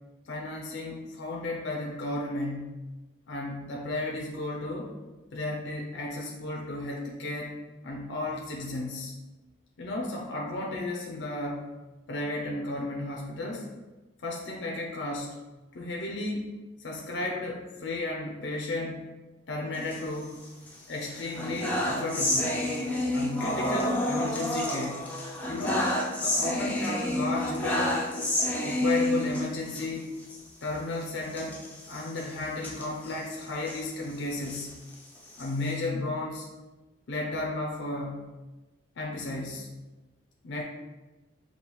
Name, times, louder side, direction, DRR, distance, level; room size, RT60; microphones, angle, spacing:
voice 1, 0.3-2.7 3.3-4.9 5.3-7.6 7.8-9.1 9.8-11.6 12.1-13.7 14.2-15.3 15.7-16.5 16.8-19.1 19.5-20.4 20.9-22.5 23.1-25.1 25.4-25.9 26.2-28.0 28.6-30.1 30.6-34.7 35.4-36.5 37.1-38.3 39.0-39.7 40.4-40.6, left 2 dB, 60° left, -1 dB, 0.5 m, -34 dB
sound 1, 19.7-20.7 21.1-29.9 30.2-30.4 30.6-30.8 31.3-33.8 34.3-35.7, left 1 dB, 10° left, 0.5 m, -30 dB
5.3 x 2.3 x 3.0 m, 1.2 s
head